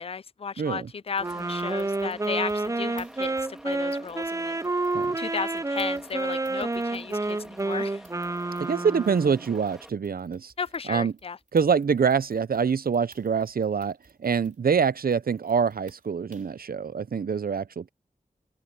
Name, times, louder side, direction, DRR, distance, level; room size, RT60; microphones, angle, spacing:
voice 1, 0.0-4.6 5.2-8.0 10.6-11.4, left 5 dB, 40° left, 0.4 m, -34 dB
voice 2, 0.6-0.9 4.9-5.1 8.6-10.5 10.9-11.1 11.5-17.9, right 6 dB, 85° right, 0.6 m, -25 dB
sound 1, 1.2-9.9, equal, 5° right, 3.6 m, -49 dB
Wind instrument woodwind instrument, 1.2-9.4, right 2 dB, 20° right, 0.5 m, -29 dB
sound 2, 1.2-16.6, right 3 dB, 60° right, 3.6 m, -59 dB
open air
wide cardioid pair, 50°, 15 cm